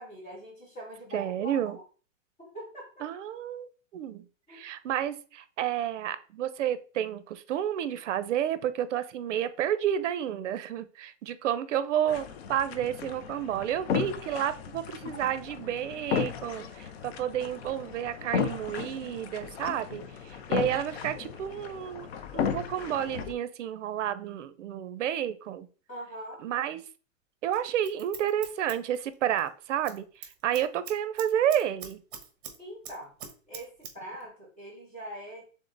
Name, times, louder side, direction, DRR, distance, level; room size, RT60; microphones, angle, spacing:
voice 1, 0.0-1.8 2.4-3.1 4.5-4.6 25.9-26.4 32.6-33.1 33.5-35.5, right 1 dB, 15° left, 2.1 m, -42 dB
voice 2, 1.1-1.8 3.0-22.1 22.3-25.7 26.4-26.8 27.4-32.0, right 10 dB, 65° right, 0.7 m, -31 dB
sound 1, 12.1-23.3, left 7 dB, 50° left, 0.5 m, -35 dB
Scissors, 27.5-29.5 29.8-30.0 30.2-32.6 32.8-33.9 34.2-34.3, right 7 dB, 40° right, 1.2 m, -43 dB
3.7 x 3.6 x 3.8 m
supercardioid pair, 170°, 40 cm